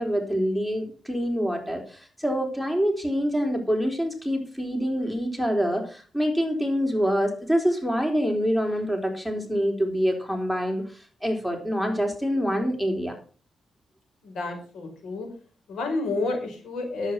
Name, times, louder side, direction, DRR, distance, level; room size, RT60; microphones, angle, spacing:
voice 1, 0.0-10.8 11.2-13.1, equal, 10° left, 3 dB, 4.0 m, -26 dB
voice 2, 14.2-15.3 15.7-17.1, left 3 dB, 80° left, 2 dB, 4.9 m, -30 dB
10.5 x 8.5 x 5.8 m, 0.39 s
cardioid pair, 70°, 0 cm